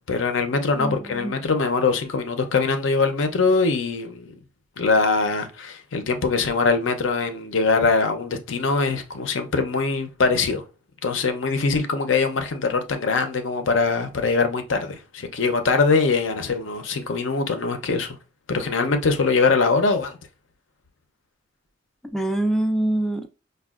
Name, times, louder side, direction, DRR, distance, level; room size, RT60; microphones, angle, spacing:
voice 1, 0.1-4.4 4.8-10.6 11.0-18.2 18.5-20.2, left 4 dB, 80° left, 0.6 m, -22 dB
voice 2, 0.7-1.3 22.1-23.3, right 1 dB, ahead, 0.3 m, -25 dB
5.2 x 2.3 x 2.3 m
head